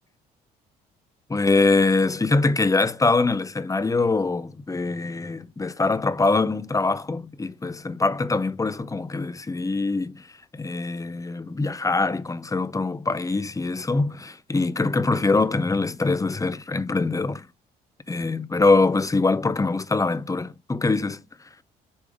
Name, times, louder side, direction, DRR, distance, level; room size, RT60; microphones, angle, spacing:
voice 1, 1.3-10.2 10.5-17.4 18.1-21.2, left 3 dB, 15° left, 0.6 m, -23 dB
7.1 x 3.5 x 4.8 m
hypercardioid pair, 55°, 21 cm